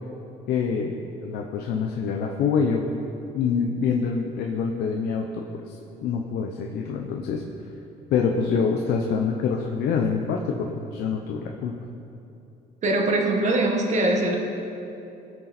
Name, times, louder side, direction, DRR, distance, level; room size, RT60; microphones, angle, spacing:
voice 1, 0.5-2.8 3.3-5.8 6.0-7.4 8.1-11.7, left 5 dB, 80° left, 2 dB, 0.9 m, -26 dB
voice 2, 12.8-14.4, right 2 dB, 45° right, 1 dB, 1.8 m, -22 dB
20.0 x 6.8 x 4.4 m, 2.8 s
cardioid pair, 110°, 17 cm